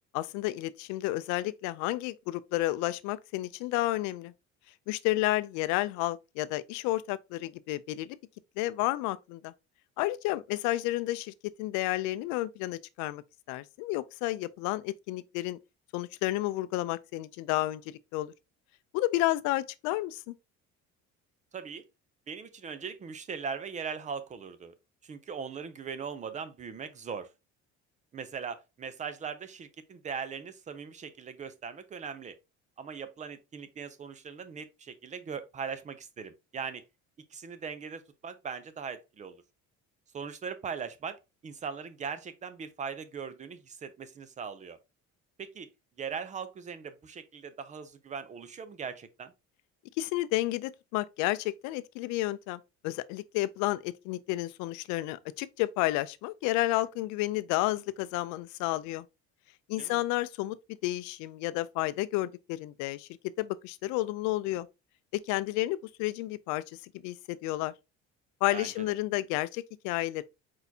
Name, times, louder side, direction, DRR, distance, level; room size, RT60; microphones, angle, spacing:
voice 1, 0.1-4.3 4.9-8.2 8.6-9.5 10.0-11.3 11.6-13.2 13.5-15.6 15.9-17.8 18.1-18.3 18.9-20.3 50.0-59.0 59.7-60.6 60.8-63.1 63.4-64.7 65.1-66.6 67.0-67.7 68.4-70.2, left 17 dB, 85° left, 0.5 m, -31 dB
voice 2, 21.5-21.8 22.3-24.7 25.0-27.3 28.1-32.4 32.8-36.8 37.3-39.4 40.1-44.8 45.4-45.7 46.0-49.3 59.8-60.0 68.5-68.7, right 6 dB, 25° right, 0.5 m, -40 dB
4.6 x 4.1 x 2.7 m
cardioid pair, 150°, 29 cm